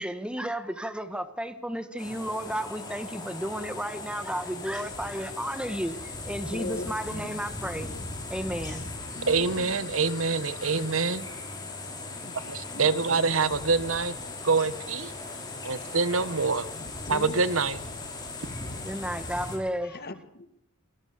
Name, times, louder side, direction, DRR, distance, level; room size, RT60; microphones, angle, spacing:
voice 1, 0.0-7.9 8.3-8.9 18.8-19.9, right 1 dB, 5° right, 10 dB, 1.6 m, -33 dB
sound 1, 2.0-19.6, left 3 dB, 20° left, 6.1 m, -38 dB
voice 2, 6.5-7.4 9.1-9.7 12.1-13.2 16.8-17.4 19.8-20.5, left 2 dB, 45° left, 10 dB, 2.0 m, -40 dB
voice 3, 9.3-11.2 12.5-14.2 14.4-15.1 15.6-16.7 17.1-17.8, right 4 dB, 65° right, 15 dB, 1.2 m, -25 dB
28.5 x 20.5 x 6.9 m, 0.76 s
head